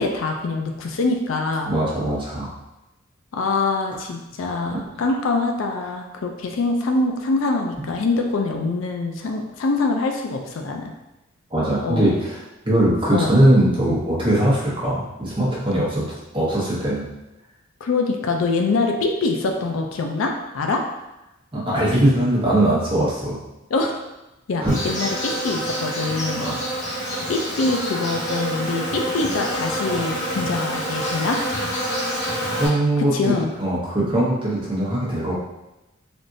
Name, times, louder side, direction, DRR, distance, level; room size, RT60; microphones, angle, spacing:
voice 1, 0.0-1.7 3.3-10.9 11.8-12.1 13.1-13.3 17.8-20.8 23.7-24.0 24.5-26.5 26.8-27.0 27.3-31.4 33.0-33.5, left 3 dB, 70° left, 3 dB, 0.4 m, -24 dB
voice 2, 1.7-2.5 4.7-4.8 11.5-12.4 12.6-16.0 16.3-17.0 21.5-23.4 24.6-24.7 26.4-26.6 32.4-35.3, right 1 dB, 25° right, -7 dB, 1.0 m, -20 dB
Insect, 24.7-32.7, equal, 40° left, 1.0 m, -27 dB
3.5 x 2.5 x 2.6 m, 0.98 s
head